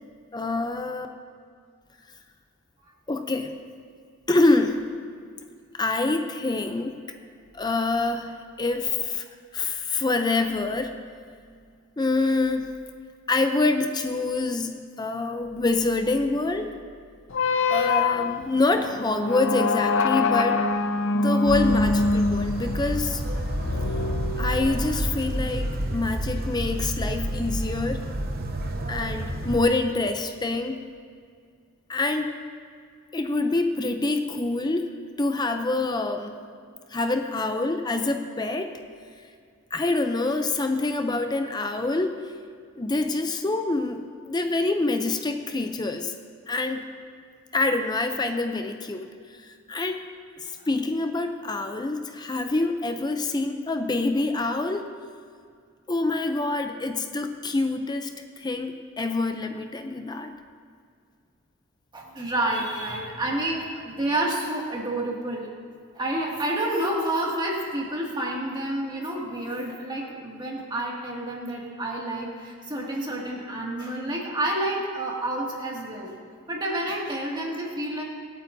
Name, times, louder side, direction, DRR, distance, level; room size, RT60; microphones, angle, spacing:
voice 1, 0.3-1.1 3.1-3.5 4.3-4.9 5.7-7.0 7.5-9.2 9.5-11.0 12.0-12.7 13.3-16.7 17.7-20.6 21.1-23.2 24.4-28.1 28.9-30.8 31.9-32.3 33.1-34.9 35.2-36.4 36.9-38.8 39.7-42.2 42.8-46.1 46.5-46.9 47.5-50.0 50.4-54.9 55.9-60.3, left 2 dB, 20° left, 6 dB, 0.5 m, -26 dB
sound 1, 17.3-25.1, left 3 dB, 65° left, 0.6 m, -25 dB
sound 2, 21.5-29.6, right 1 dB, 45° right, 0.9 m, -29 dB
voice 2, 61.9-65.5 65.9-76.1 76.5-78.0, right 1 dB, 20° right, -3 dB, 2.2 m, -29 dB
25.5 x 9.0 x 2.7 m, 2.2 s
head